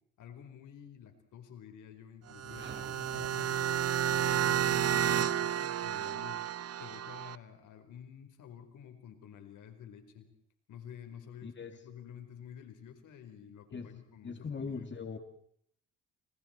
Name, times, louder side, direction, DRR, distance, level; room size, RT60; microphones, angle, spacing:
voice 1, 0.2-6.4 6.8-10.3 10.7-14.9, left 8 dB, 80° left, 6 dB, 4.5 m, -50 dB
sound 1, 2.3-4.4, right 4 dB, 35° right, 6.2 m, -52 dB
sound 2, 2.3-7.4, right 9 dB, 55° right, 1.0 m, -31 dB
voice 2, 11.4-11.8 13.7-14.0 14.2-15.2, left 5 dB, 40° left, 6 dB, 2.6 m, -40 dB
29.5 x 29.0 x 4.5 m, 0.67 s
cardioid pair, 90°, 30 cm